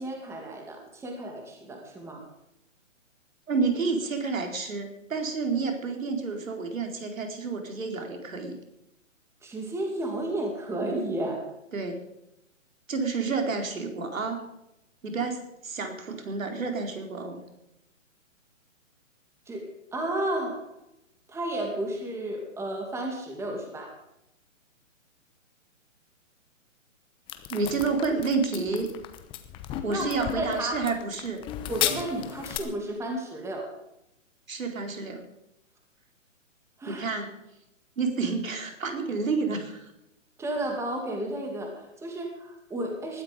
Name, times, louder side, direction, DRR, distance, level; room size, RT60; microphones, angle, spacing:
voice 1, 0.0-2.3 9.4-11.5 19.5-20.7 21.3-24.0 29.9-30.8 31.7-33.7 36.8-37.1 40.4-43.2, right 1 dB, 5° right, 2 dB, 2.4 m, -32 dB
voice 2, 3.5-8.6 11.7-12.0 12.9-14.4 15.0-17.4 27.5-28.9 29.8-31.4 34.5-35.2 36.9-37.3 38.0-39.9, right 4 dB, 80° right, 4 dB, 4.5 m, -29 dB
sound 1, 27.3-32.6, left 11 dB, 15° left, 0.9 m, -34 dB
20.0 x 12.5 x 5.2 m, 0.85 s
hypercardioid pair, 145°, 39 cm